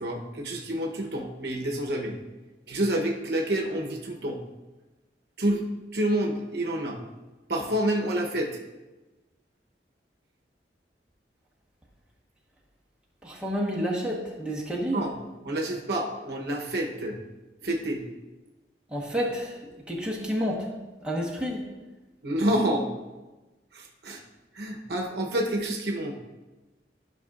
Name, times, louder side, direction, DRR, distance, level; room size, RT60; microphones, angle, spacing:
voice 1, 0.0-2.2 2.7-4.4 5.4-5.6 5.9-7.0 7.5-8.5 14.9-15.1 15.4-17.2 17.6-18.0 22.2-22.9 23.7-24.2 24.5-26.1, right 1 dB, 60° right, 1 dB, 0.9 m, -28 dB
voice 2, 13.2-15.1 18.9-19.6 19.9-20.7 21.0-21.7, equal, 5° right, -4 dB, 1.1 m, -29 dB
12.0 x 6.0 x 2.4 m, 1.1 s
head